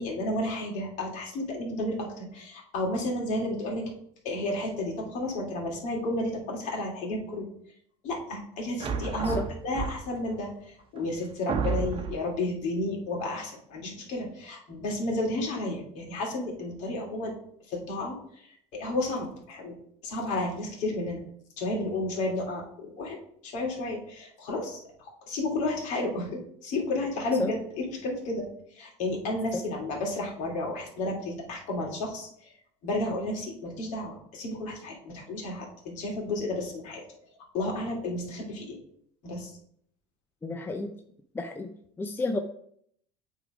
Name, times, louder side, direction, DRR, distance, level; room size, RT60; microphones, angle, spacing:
voice 1, 0.0-3.9 4.2-7.5 8.0-9.4 9.6-17.3 17.7-19.7 20.0-21.2 21.6-32.5 32.8-37.0 37.5-38.8 39.2-39.5, left 2 dB, 55° left, -1 dB, 2.8 m, -32 dB
sound 1, 8.8-10.3 11.0-11.1 11.5-12.3, right 5 dB, 35° right, 1.1 m, -31 dB
voice 2, 40.4-40.9 41.3-42.4, left 2 dB, 15° left, 5 dB, 0.7 m, -32 dB
8.0 x 3.8 x 4.9 m, 0.67 s
supercardioid pair, 95°, 14 cm